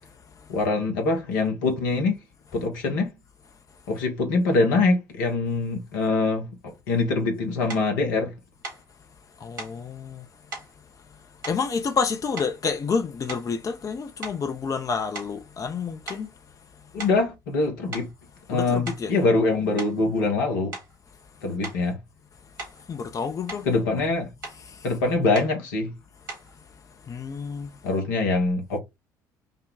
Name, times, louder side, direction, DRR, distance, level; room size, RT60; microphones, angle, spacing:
voice 1, 0.5-2.2 2.5-3.1 3.9-8.3 16.9-18.1 18.5-20.7 21.4-22.0 23.6-24.3 24.8-25.9 27.8-28.8, left 3 dB, 70° left, 1.2 m, -24 dB
sound 1, 7.7-7.9 8.6-8.9 9.6-9.8 10.5-10.7 11.4-12.0 12.3-12.7 13.2-13.6 14.2-15.8 16.1-16.3 17.0-17.3 17.9-18.1 18.7-19.1 19.8-20.0 20.7-21.0 21.6-21.8 22.6-22.9 23.2-23.7 24.4-24.6 25.3-25.6 26.3-26.5, right 3 dB, 85° right, 2.6 m, -39 dB
voice 2, 9.4-10.2 11.5-16.3 18.5-19.1 22.9-23.7 24.6-24.9 27.1-27.7, left 5 dB, 35° left, 0.7 m, -29 dB
5.5 x 2.3 x 3.5 m
figure-of-eight pair, 55°, 11 cm